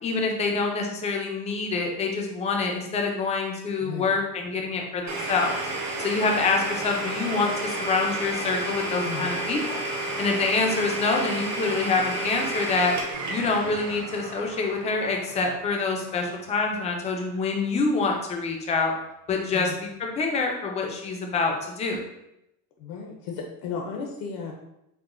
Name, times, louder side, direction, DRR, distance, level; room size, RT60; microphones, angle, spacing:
voice 1, 0.0-5.6 6.0-9.8 10.2-12.9 13.3-18.9 19.3-22.0, left 4 dB, 20° left, 1 dB, 0.3 m, -26 dB
voice 2, 3.8-4.1 9.0-9.3 19.5-19.8 22.8-24.5, left 6 dB, 70° left, 1 dB, 0.6 m, -34 dB
Domestic sounds home sounds, 5.1-16.7, right 1 dB, 50° right, 0.9 m, -32 dB
4.7 x 2.1 x 2.5 m, 0.85 s
cardioid pair, 160°, 37 cm